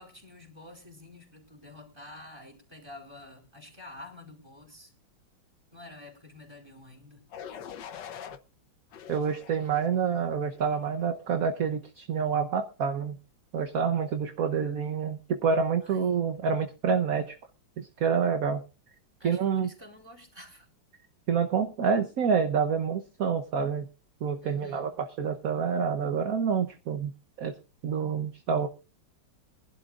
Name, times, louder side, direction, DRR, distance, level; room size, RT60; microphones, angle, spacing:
voice 1, 0.0-4.9 5.7-7.3 15.8-16.2 19.2-20.7 24.4-24.9, left 2 dB, 15° right, 3 dB, 4.5 m, -49 dB
sound 1, 7.3-8.4 8.9-10.0 10.5-10.9, left 8 dB, 70° left, 1.6 m, -44 dB
voice 2, 9.1-13.2 13.5-17.4 17.8-18.6 19.2-19.7 21.3-23.9 24.2-27.1 27.4-27.6 27.8-28.7, right 6 dB, 55° right, 6 dB, 1.3 m, -27 dB
23.5 x 12.0 x 2.5 m, 0.32 s
omnidirectional pair, 2.1 m